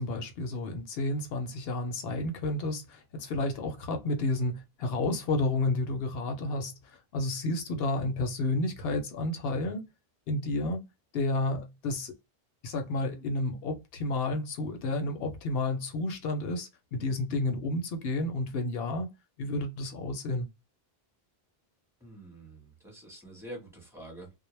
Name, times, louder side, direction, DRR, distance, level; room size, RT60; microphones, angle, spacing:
voice 1, 0.0-9.8 10.3-10.9 11.1-12.1 12.6-19.1 19.4-20.5, left 2 dB, 70° left, 0.8 m, -31 dB
voice 2, 22.0-24.3, right 1 dB, 5° right, 1.1 m, -46 dB
2.2 x 2.0 x 3.1 m
omnidirectional pair, 1.0 m